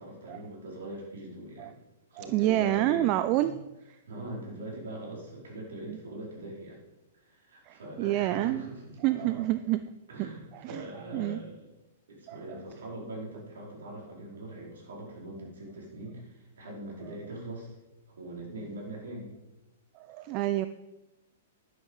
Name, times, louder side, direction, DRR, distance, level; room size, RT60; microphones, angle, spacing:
voice 1, 0.0-1.7 2.1-3.1 3.4-3.6 4.0-6.8 7.1-9.4 10.1-11.7 12.1-17.8 18.1-19.3, right 1 dB, 65° right, -2 dB, 4.8 m, -42 dB
voice 2, 2.2-3.6 5.9-6.0 7.7-8.7 9.0-9.8 10.2-10.3 10.5-10.8 11.1-11.4 12.3-12.4 20.1-20.7, right 15 dB, 35° right, 12 dB, 0.5 m, -28 dB
11.0 x 10.0 x 5.5 m, 1.0 s
figure-of-eight pair, 105°, 0 cm